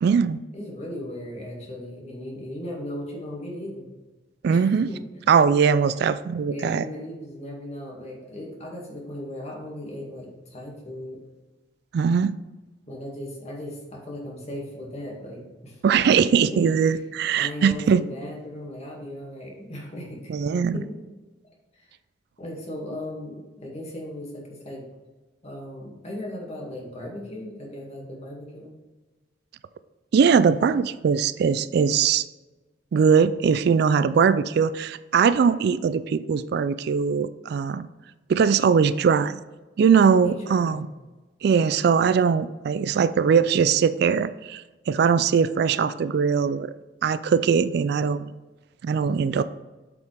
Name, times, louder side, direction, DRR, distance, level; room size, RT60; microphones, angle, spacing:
voice 1, 0.0-0.4 4.4-4.9 5.3-6.8 11.9-12.3 15.8-18.0 20.3-20.8 30.1-32.2 32.9-37.9 38.3-39.4 39.8-40.9 41.4-46.7 47.0-48.3 48.8-49.4, right 6 dB, 60° right, 14 dB, 0.3 m, -21 dB
voice 2, 0.5-3.9 4.5-5.0 6.5-11.2 12.9-15.8 16.3-16.9 17.4-21.0 21.4-21.9 22.4-24.8 25.4-28.7 39.9-40.8, left 1 dB, 35° left, -2 dB, 2.1 m, -37 dB
7.9 x 5.2 x 3.4 m, 1.2 s
head